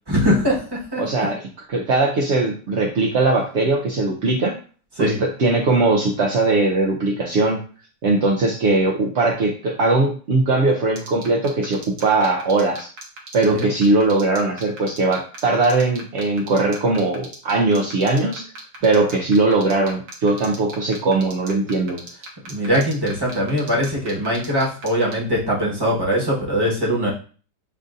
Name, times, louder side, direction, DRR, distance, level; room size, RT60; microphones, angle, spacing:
voice 1, 0.1-1.3 5.0-5.2 13.4-13.7 22.5-27.1, equal, 15° right, -5 dB, 1.1 m, -21 dB
voice 2, 1.0-1.4 1.7-4.6 5.0-7.6 8.0-12.9 13.3-18.5 18.8-22.0, right 2 dB, 60° right, -1 dB, 0.7 m, -20 dB
sound 1, 11.0-25.1, right 4 dB, 85° right, 1.7 m, -37 dB
7.6 x 2.6 x 2.5 m, 0.40 s
omnidirectional pair, 1.8 m